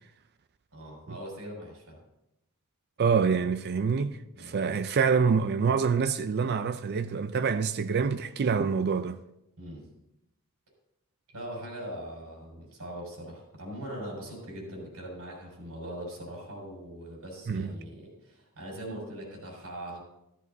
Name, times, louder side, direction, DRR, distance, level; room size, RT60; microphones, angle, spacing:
voice 1, 0.7-2.0 4.3-4.6 9.6-9.8 11.3-20.0, right 1 dB, 85° right, 5.3 m, -41 dB
voice 2, 3.0-9.2 17.5-17.7, right 5 dB, 45° right, 0.4 m, -26 dB
14.0 x 13.0 x 2.7 m
head